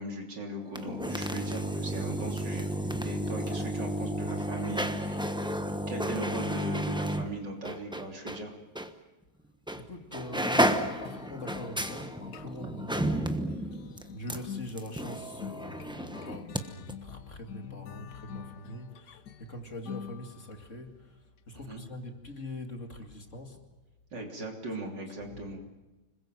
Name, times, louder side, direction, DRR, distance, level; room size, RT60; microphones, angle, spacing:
voice 1, 0.0-2.7 3.0-5.3 5.9-8.6 21.6-21.8 24.1-25.6, right 1 dB, 65° right, 2 dB, 3.8 m, -39 dB
sound 1, 0.6-8.4 8.8-8.9 9.7-9.9 10.1-16.6 16.9-17.0, right 1 dB, 5° right, 0.9 m, -32 dB
voice 2, 9.8-13.8 14.1-23.6 25.2-25.4, left 1 dB, 40° left, 4 dB, 2.6 m, -43 dB
sound 2, 11.0-20.7, left 8 dB, 65° left, 1.5 m, -46 dB
26.0 x 21.5 x 7.7 m, 1.1 s
omnidirectional pair, 2.1 m